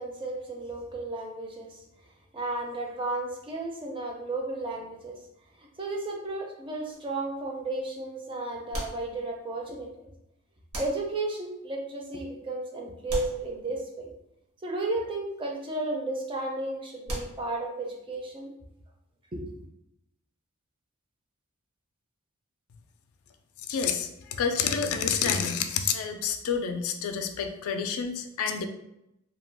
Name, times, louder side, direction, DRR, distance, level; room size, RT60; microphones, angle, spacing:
voice 1, 0.0-1.8 2.3-5.2 5.6-10.1 10.7-14.1 14.6-18.5 19.3-19.5, right 2 dB, 25° right, 0 dB, 0.4 m, -33 dB
sound 1, 6.9-7.5 8.7-9.7 10.7-11.5 13.1-14.1 17.0-17.9, equal, 75° right, 0.9 m, -38 dB
voice 2, 23.7-24.1 24.4-28.7, left 6 dB, 70° left, 6 dB, 0.3 m, -28 dB
2.3 x 2.2 x 3.3 m, 0.84 s
head